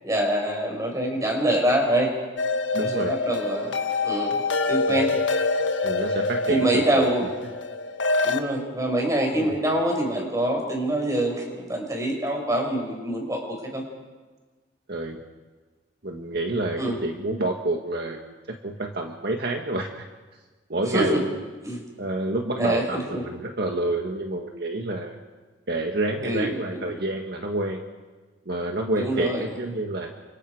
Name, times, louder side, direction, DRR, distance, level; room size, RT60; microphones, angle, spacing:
voice 1, 0.0-2.1 2.7-3.8 4.0-4.4 4.7-5.1 6.5-7.3 8.2-13.8 16.8-16.9 20.9-21.2 21.6-21.8 22.6-23.2 26.2-26.5 26.7-26.8 29.0-29.4, right 1 dB, 20° right, 1 dB, 5.8 m, -25 dB
sound 1, 2.4-8.4, left 3 dB, 75° left, 1.5 m, -26 dB
voice 2, 2.7-3.1 4.9-5.0 5.8-7.1 9.4-9.5 14.9-15.2 16.0-20.1 20.7-21.3 22.0-25.2 25.7-27.8 28.5-30.1, right 2 dB, 60° right, 2 dB, 1.8 m, -28 dB
30.0 x 26.0 x 5.0 m, 1.3 s
head